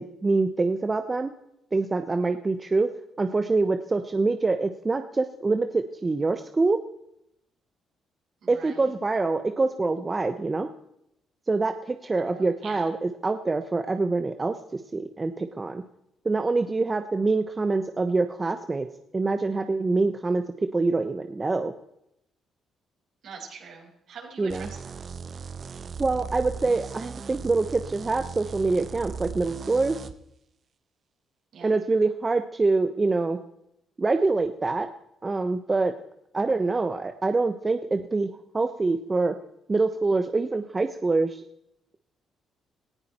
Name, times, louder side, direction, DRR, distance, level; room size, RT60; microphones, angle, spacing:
voice 1, 0.0-1.3 1.7-2.9 3.2-6.8 8.5-10.7 11.5-15.8 16.2-18.9 19.1-20.4 20.7-21.7 24.4-24.7 26.0-30.0 31.6-33.4 34.0-34.9 35.2-35.9 36.3-39.3 39.7-41.4, right 3 dB, 25° right, 7 dB, 1.0 m, -25 dB
voice 2, 8.4-8.9 12.2-12.9 23.2-25.0 31.5-31.7, right 5 dB, 65° right, 0 dB, 6.0 m, -44 dB
sound 1, 24.5-30.1, right 5 dB, 50° right, 1.1 m, -38 dB
18.5 x 15.0 x 4.4 m, 0.80 s
cardioid pair, 90°, 0 cm